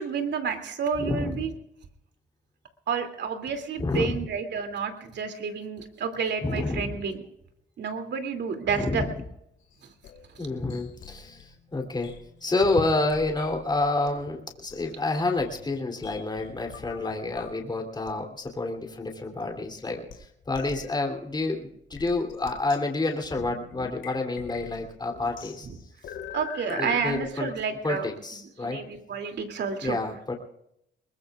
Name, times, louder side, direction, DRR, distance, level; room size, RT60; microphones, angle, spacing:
voice 1, 0.0-1.5 2.9-7.2 7.8-9.1 26.3-28.1 28.6-30.0, right 6 dB, 60° right, 6 dB, 2.7 m, -30 dB
voice 2, 0.9-1.5 3.8-4.3 6.4-7.0 8.7-9.1 10.4-12.1 12.4-25.7 26.7-27.5 27.8-28.8 29.8-30.3, left 2 dB, 20° left, 2 dB, 3.1 m, -29 dB
sound 1, 9.6-14.1 14.4-17.7 18.0-18.1 18.5-18.6 19.4-19.5 20.1-20.2 20.5-20.9 21.9-27.2, left 8 dB, 75° left, 2.2 m, -45 dB
22.0 x 20.5 x 2.4 m, 0.78 s
cardioid pair, 90°, 20 cm